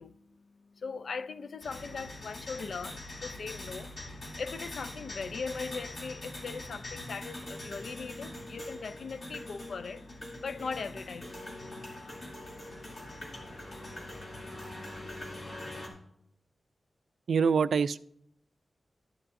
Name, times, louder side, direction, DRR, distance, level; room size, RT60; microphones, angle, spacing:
voice 1, 0.0-10.1 10.4-11.3, left 5 dB, 70° left, 0.5 m, -40 dB
sound 1, 1.6-15.9, left 1 dB, 50° left, 2.9 m, -43 dB
voice 2, 17.3-18.0, right 6 dB, 85° right, 0.3 m, -25 dB
13.0 x 11.0 x 2.6 m
wide cardioid pair, 150°, 0 cm